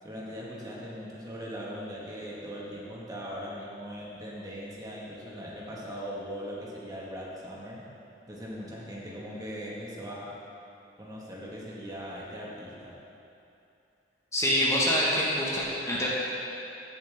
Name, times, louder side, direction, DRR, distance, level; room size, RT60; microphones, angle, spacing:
voice 1, 0.0-7.9 8.2-10.3 11.0-13.0, equal, 20° right, -5 dB, 1.7 m, -40 dB
voice 2, 14.3-16.1, equal, 15° left, -6 dB, 1.5 m, -25 dB
16.0 x 7.4 x 3.6 m, 2.7 s
head